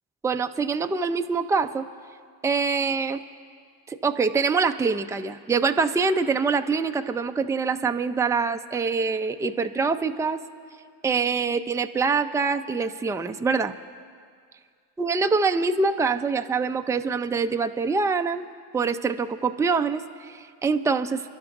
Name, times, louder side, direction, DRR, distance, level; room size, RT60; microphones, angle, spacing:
voice 1, 0.2-1.8 2.4-3.2 3.9-10.4 11.0-13.7 15.0-18.5 18.7-21.2, right 4 dB, 5° right, 7 dB, 0.4 m, -24 dB
27.5 x 11.5 x 2.6 m, 2.1 s
hypercardioid pair, 60°, 49 cm